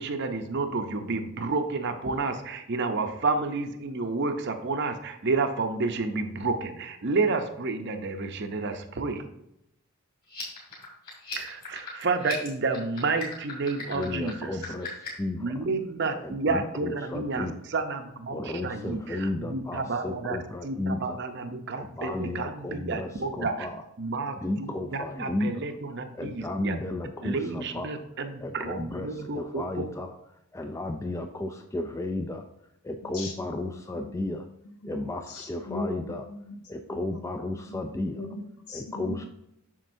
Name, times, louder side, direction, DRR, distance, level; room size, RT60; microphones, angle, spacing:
voice 1, 0.0-9.3 11.4-14.7 15.4-23.7 24.0-26.8 27.2-29.9, right 3 dB, 50° right, 7 dB, 0.6 m, -30 dB
sound 1, 10.2-15.3, left 5 dB, 40° left, 2.5 m, -40 dB
voice 2, 13.9-15.4 16.2-17.6 18.3-21.2 21.8-23.8 24.4-25.5 26.2-27.9 28.4-29.1 29.3-30.1 30.5-32.4 32.8-34.4 34.8-36.2 36.7-38.2 38.7-39.2, left 2 dB, 15° left, 5 dB, 0.3 m, -33 dB
voice 3, 33.0-33.3 33.9-36.6 36.9-37.8 38.1-39.2, left 2 dB, 85° left, 3 dB, 0.9 m, -40 dB
7.4 x 6.4 x 2.6 m, 0.82 s
head